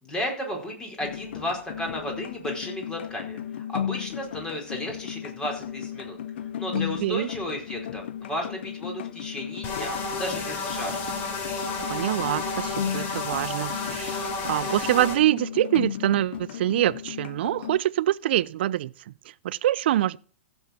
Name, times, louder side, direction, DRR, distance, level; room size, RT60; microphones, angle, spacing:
voice 1, 0.0-3.4 3.7-6.2 6.6-11.0, left 1 dB, 10° left, 4.6 m, -33 dB
sound 1, 1.0-17.8, left 10 dB, 70° left, 0.7 m, -35 dB
voice 2, 6.7-7.3 11.9-20.2, right 13 dB, 60° right, 0.5 m, -25 dB
sound 2, 9.6-15.2, left 3 dB, 35° left, 3.4 m, -31 dB
15.0 x 7.3 x 4.4 m
hypercardioid pair, 135°, 6 cm